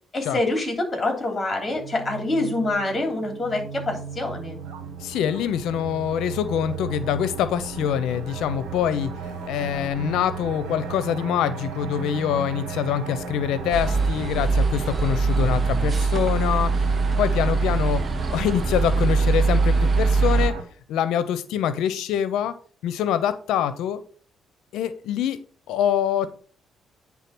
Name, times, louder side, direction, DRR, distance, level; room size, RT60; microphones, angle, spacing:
voice 1, 0.1-4.6, left 2 dB, 25° left, 3 dB, 3.3 m, -26 dB
sound 1, 1.6-20.6, right 5 dB, 90° right, 1.7 m, -35 dB
voice 2, 5.0-9.1 9.5-20.5 20.9-22.5 22.8-24.0 24.7-25.4 25.7-26.4, left 9 dB, 85° left, 13 dB, 0.6 m, -25 dB
sound 2, 13.7-20.5, right 4 dB, 35° right, 0.5 m, -22 dB
9.7 x 3.6 x 6.0 m, 0.43 s
cardioid pair, 90°, 0 cm